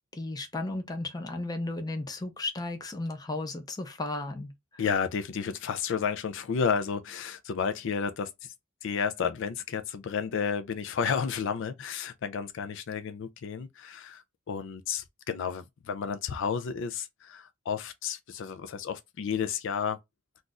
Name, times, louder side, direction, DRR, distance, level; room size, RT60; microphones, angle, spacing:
voice 1, 0.1-4.8, left 2 dB, 20° left, 0.6 m, -35 dB
voice 2, 4.8-8.5 8.8-20.0, left 6 dB, 65° left, 0.4 m, -32 dB
2.5 x 2.4 x 3.8 m
head